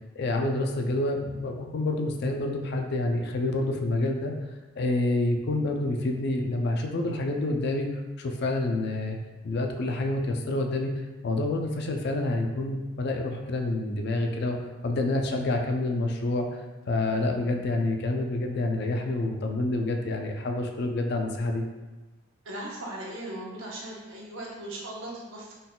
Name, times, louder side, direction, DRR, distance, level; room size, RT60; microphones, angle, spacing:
voice 1, 0.2-4.3 4.8-7.9 8.2-9.2 9.4-10.9 11.2-14.6 14.8-16.5 16.9-21.6, left 2 dB, 50° left, 3 dB, 0.4 m, -28 dB
voice 2, 22.4-25.5, right 1 dB, 65° right, -3 dB, 0.9 m, -38 dB
3.9 x 3.7 x 2.2 m, 1.1 s
head